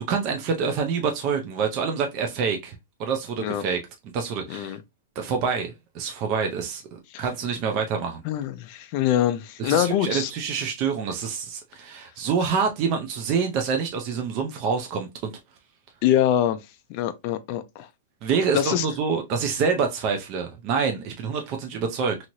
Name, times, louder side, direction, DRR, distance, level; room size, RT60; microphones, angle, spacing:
voice 1, 0.1-3.8 4.1-4.8 5.2-8.2 9.6-15.4 18.2-22.2, right 5 dB, 30° right, 0.5 m, -26 dB
voice 2, 4.5-4.8 7.1-7.2 8.2-10.3 16.0-16.6 16.9-17.9 18.5-18.9, left 11 dB, 35° left, 0.4 m, -24 dB
2.9 x 2.8 x 2.6 m
supercardioid pair, 165°, 0 cm